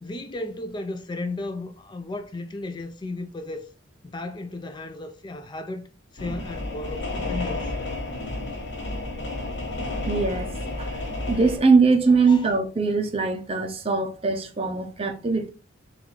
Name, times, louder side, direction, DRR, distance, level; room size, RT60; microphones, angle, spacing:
voice 1, 0.0-3.7 4.0-5.9 6.1-7.7 12.3-12.5, left 2 dB, 25° left, 0.4 m, -34 dB
sound 1, 6.2-11.6, left 2 dB, 65° left, 1.1 m, -31 dB
voice 2, 10.1-10.5 10.8-11.0 11.3-15.5, right 4 dB, 30° right, 0.5 m, -21 dB
3.9 x 2.4 x 4.5 m
head